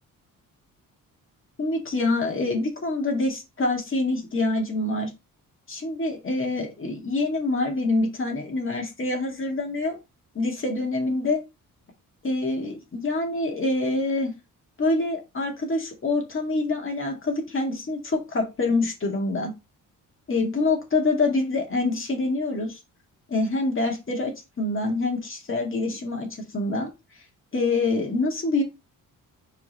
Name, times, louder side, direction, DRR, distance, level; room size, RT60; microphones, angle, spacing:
voice 1, 1.6-5.1 5.7-10.0 10.3-11.4 12.2-14.3 14.8-19.5 20.3-22.8 23.3-26.3 26.5-26.9 27.5-28.6, left 2 dB, 35° left, 2.3 m, -26 dB
4.9 x 4.5 x 4.2 m
cardioid pair, 90°, 35 cm